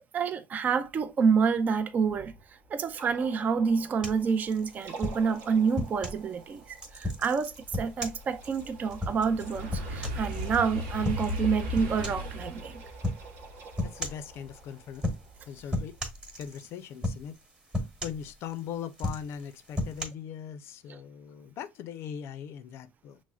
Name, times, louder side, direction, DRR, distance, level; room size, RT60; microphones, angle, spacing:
voice 1, 0.1-2.3 2.7-12.8, right 6 dB, 35° right, 0.4 m, -28 dB
sound 1, 1.7-16.1, right 4 dB, 55° right, 0.8 m, -50 dB
sound 2, 4.0-6.2 6.8-10.6 11.0-11.4 11.7-12.3 13.0-13.3 13.8-14.3 14.9-15.4 15.7-16.7 17.0-17.4 17.7-18.6 18.9-20.0, left 1 dB, 15° right, 1.1 m, -34 dB
sound 3, 6.0-6.1 6.6-15.6 16.0-16.4, left 1 dB, 90° right, 0.8 m, -38 dB
voice 2, 13.8-15.0 15.5-16.0 16.4-17.4 18.0-23.2, left 8 dB, 60° left, 0.5 m, -40 dB
6.0 x 2.0 x 2.3 m
supercardioid pair, 105°, 5 cm